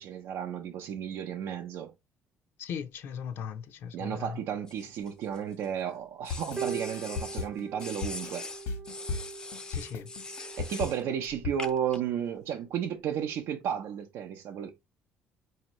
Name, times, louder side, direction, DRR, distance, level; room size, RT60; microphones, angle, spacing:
voice 1, 0.0-1.9 3.9-8.5 10.6-14.7, right 9 dB, 65° right, 0.6 m, -33 dB
voice 2, 2.6-4.4 9.7-10.1, left 7 dB, 60° left, 0.6 m, -38 dB
sound 1, 4.7-5.7 6.2-7.5 7.8-11.0 11.6-12.0, left 3 dB, 20° left, 0.5 m, -42 dB
sound 2, 6.3-11.6, left 5 dB, 85° left, 1.2 m, -36 dB
sound 3, 6.6-13.4, right 6 dB, 20° right, 0.7 m, -43 dB
5.1 x 2.8 x 2.9 m
cardioid pair, 160°, 4 cm